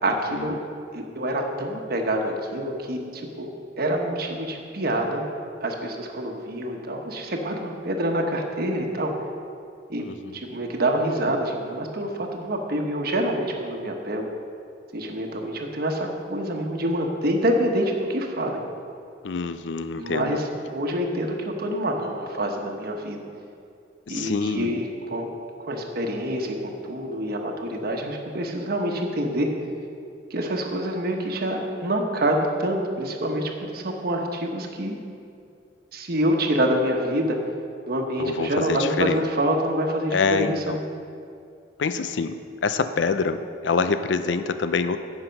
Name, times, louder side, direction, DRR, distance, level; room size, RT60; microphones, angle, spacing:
voice 1, 0.0-0.6 0.9-3.5 3.8-5.3 5.6-9.1 9.9-10.0 10.3-14.3 14.9-18.6 20.0-23.3 24.1-25.3 25.6-29.5 30.3-35.0 35.9-37.4 37.8-40.8, right 1 dB, 55° right, 2 dB, 1.2 m, -26 dB
voice 2, 10.0-10.4 19.2-20.4 24.1-24.7 38.2-39.2 40.1-40.8 41.8-45.0, left 4 dB, 80° left, 11 dB, 0.5 m, -26 dB
10.0 x 7.8 x 5.3 m, 2.5 s
head